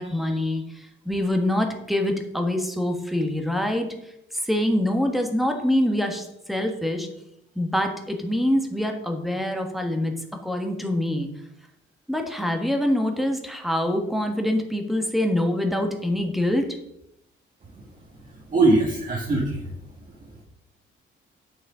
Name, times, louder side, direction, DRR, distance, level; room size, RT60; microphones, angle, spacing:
voice 1, 0.0-7.1 7.5-10.1 10.4-11.3 12.1-16.8, left 1 dB, ahead, 3 dB, 1.5 m, -25 dB
voice 2, 18.5-19.7, right 2 dB, 40° right, -2 dB, 1.8 m, -21 dB
9.1 x 6.4 x 5.0 m, 0.81 s
cardioid pair, 130°, 21 cm